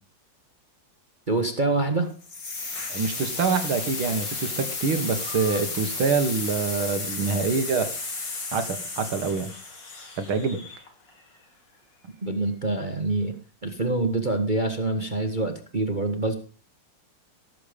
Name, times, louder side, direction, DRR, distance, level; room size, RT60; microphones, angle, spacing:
voice 1, 1.3-2.1 12.2-13.3 13.6-16.3, right 2 dB, 25° right, 5 dB, 1.3 m, -25 dB
sound 1, 2.2-11.1, left 3 dB, 55° left, 3.6 m, -33 dB
voice 2, 2.9-7.9 8.5-9.5 10.2-10.6, right 5 dB, 80° right, 9 dB, 2.4 m, -25 dB
18.0 x 7.8 x 5.1 m, 0.36 s
omnidirectional pair, 2.3 m